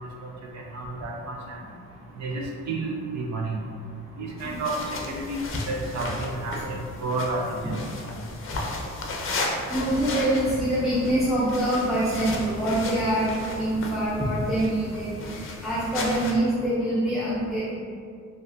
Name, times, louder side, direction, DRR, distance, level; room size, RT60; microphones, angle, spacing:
voice 1, 0.7-1.6 2.2-3.6 4.2-5.4 5.7-7.8, right 2 dB, 60° right, -1 dB, 0.5 m, -31 dB
sound 1, 4.4-16.3, left 2 dB, 45° left, 0.5 m, -35 dB
voice 2, 9.7-17.7, right 1 dB, ahead, -9 dB, 0.5 m, -25 dB
3.2 x 2.4 x 2.6 m, 2.2 s
cardioid pair, 90°, 30 cm